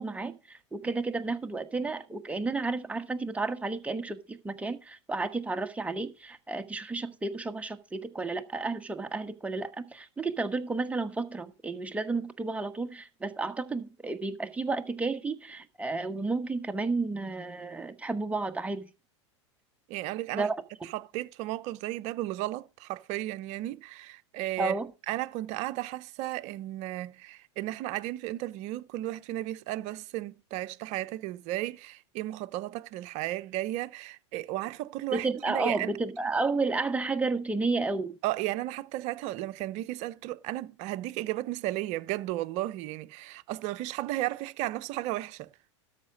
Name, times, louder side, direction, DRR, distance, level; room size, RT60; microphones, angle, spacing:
voice 1, 0.0-18.9 20.3-20.9 24.6-24.9 35.1-38.1, right 3 dB, 10° right, 1.3 m, -32 dB
voice 2, 19.9-20.5 20.9-24.8 25.1-35.9 38.2-45.5, right 16 dB, 50° right, 0.8 m, -34 dB
13.0 x 5.9 x 5.3 m
hypercardioid pair, 90°, 15 cm